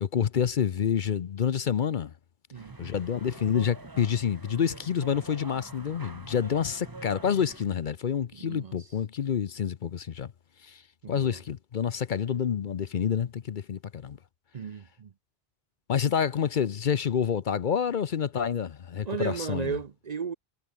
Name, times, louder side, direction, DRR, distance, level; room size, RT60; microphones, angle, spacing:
voice 1, 0.0-2.1 2.8-10.3 10.6-10.8 11.1-14.2 15.9-19.8, left 8 dB, 55° left, 0.8 m, -28 dB
sound 1, 2.5-7.7, right 3 dB, 20° right, 1.0 m, -45 dB
voice 2, 8.3-8.8 11.0-11.4 14.5-15.1 19.0-20.3, right 6 dB, 45° right, 0.7 m, -35 dB
omnidirectional pair, 1.1 m